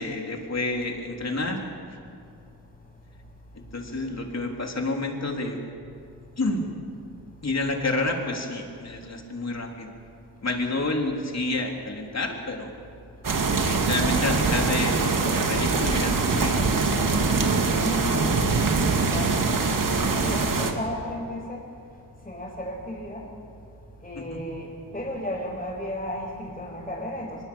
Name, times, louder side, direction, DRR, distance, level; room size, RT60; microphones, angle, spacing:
voice 1, 0.0-1.6 1.9-2.0 3.5-5.6 6.4-6.7 7.4-9.9 10.4-12.7 13.5-16.7 24.2-24.4, left 2 dB, 40° left, 1 dB, 3.8 m, -29 dB
sound 1, 13.2-20.7, right 4 dB, 55° right, 2.5 m, -23 dB
voice 2, 17.8-19.5 20.0-21.6 22.3-23.2 24.0-24.7 24.9-27.4, left 1 dB, 20° left, -5 dB, 5.5 m, -34 dB
23.0 x 21.5 x 7.3 m, 2.5 s
cardioid pair, 70°, 39 cm